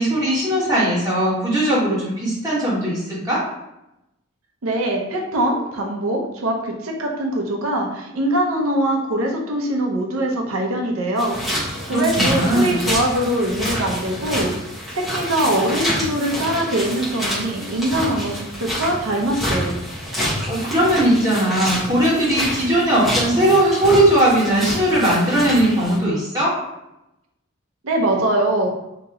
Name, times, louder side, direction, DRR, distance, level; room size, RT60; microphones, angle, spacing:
voice 1, 0.0-3.4 11.9-12.8 20.2-26.5, right 1 dB, 15° right, -8 dB, 1.4 m, -19 dB
voice 2, 4.6-14.5 14.9-19.8 27.8-28.7, right 1 dB, 90° right, 1 dB, 0.6 m, -22 dB
sound 1, 11.2-26.0, equal, ahead, 1.1 m, -27 dB
2.9 x 2.9 x 3.6 m, 0.88 s
head